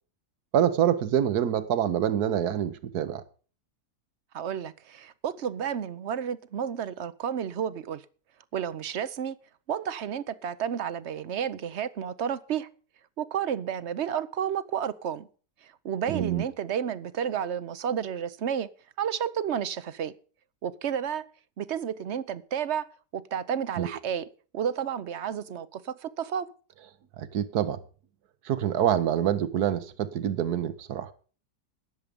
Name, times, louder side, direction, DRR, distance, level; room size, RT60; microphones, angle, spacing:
voice 1, 0.5-3.2 16.1-16.4 23.8-23.9 27.2-27.8 28.4-31.1, right 10 dB, 70° right, 1.5 m, -26 dB
voice 2, 4.3-8.0 8.5-9.4 9.7-12.7 13.2-15.3 15.6-18.7 19.0-20.1 20.6-21.2 21.6-22.9 23.1-24.3 24.5-26.5, right 8 dB, 55° right, 0.9 m, -31 dB
19.0 x 7.4 x 5.2 m
omnidirectional pair, 1.7 m